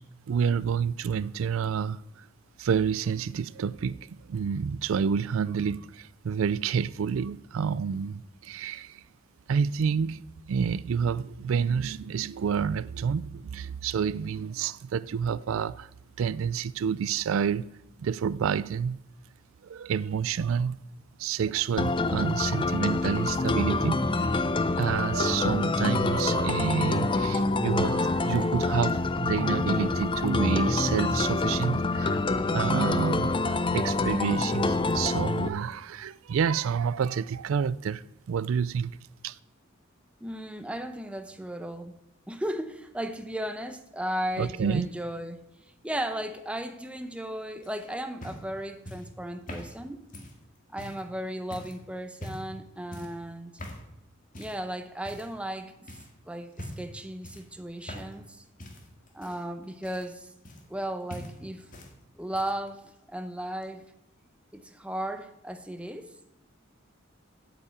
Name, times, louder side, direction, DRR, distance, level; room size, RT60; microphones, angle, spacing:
voice 1, 0.3-2.3 2.6-9.0 9.5-15.9 16.2-17.6 18.0-19.0 19.6-20.8 21.2-24.4 24.8-32.3 32.5-39.0 39.2-39.4 44.4-44.9, right 7 dB, 75° right, 0.3 m, -29 dB
sound 1, 21.8-35.5, left 3 dB, 25° left, 0.5 m, -26 dB
voice 2, 40.2-41.9 42.3-45.4 45.8-50.0 50.7-53.5 54.4-55.9 56.3-58.4 59.1-60.3 60.7-61.7 62.2-63.9 64.5-66.1, right 1 dB, 5° right, 0.8 m, -35 dB
sound 2, 47.6-51.1 51.5-51.8 52.2-52.6 52.9-53.2 53.6-53.9 54.3-54.6 55.0-55.5 55.9-56.1 56.5-56.9 57.2-58.3 58.6-60.8 61.1-61.9 62.2-62.7 63.6-63.7, left 1 dB, 40° left, 2.1 m, -43 dB
8.5 x 8.1 x 8.3 m
head